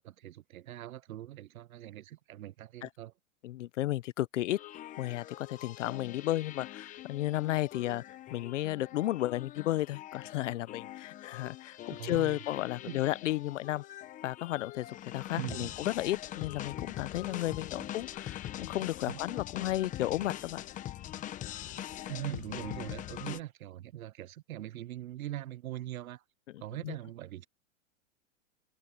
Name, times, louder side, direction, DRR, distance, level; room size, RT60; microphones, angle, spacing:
voice 1, 0.0-3.1 11.9-12.4 12.9-13.0 15.4-15.7 19.1-19.2 22.1-26.2 26.6-27.5, right 14 dB, 85° right, 0.7 m, -41 dB
voice 2, 3.4-4.6 5.0-8.0 8.3-13.8 14.2-20.6 26.8-27.0, left 15 dB, 60° left, 0.8 m, -33 dB
sound 1, 4.6-23.4, left 12 dB, 20° left, 1.0 m, -43 dB
open air
hypercardioid pair, 145°, 41 cm